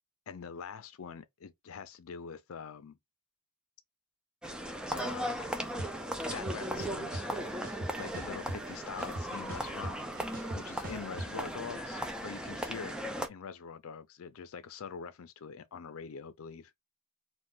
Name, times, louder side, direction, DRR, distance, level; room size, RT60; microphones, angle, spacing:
voice 1, 0.3-3.0 4.9-5.6 6.3-7.2 8.0-13.0 13.3-16.8, left 6 dB, 75° left, 0.5 m, -44 dB
sound 1, 4.4-13.3, equal, 5° right, 0.4 m, -37 dB
sound 2, 5.8-5.9 6.3-7.2 7.6-8.7 9.0-11.3, right 1 dB, 40° right, 0.9 m, -40 dB
2.5 x 2.4 x 3.6 m
head